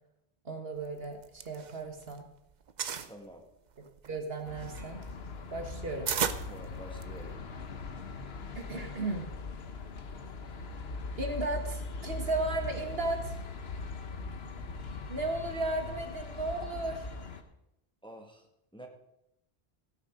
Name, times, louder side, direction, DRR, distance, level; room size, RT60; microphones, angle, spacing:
voice 1, 0.5-2.3 4.1-5.0 5.5-6.1 8.6-9.3 11.2-13.3 15.1-17.1, right 2 dB, 70° right, 4 dB, 1.9 m, -35 dB
sound 1, 1.0-2.2 2.5-3.1 3.7-7.3, right 7 dB, 50° right, 0.7 m, -35 dB
voice 2, 3.1-3.5 6.5-7.4 18.0-18.5 18.7-18.9, right 1 dB, 5° left, 2 dB, 1.6 m, -48 dB
sound 2, 4.5-17.4, left 3 dB, 75° left, 1.3 m, -40 dB
16.5 x 9.1 x 5.1 m, 0.83 s
omnidirectional pair, 1.0 m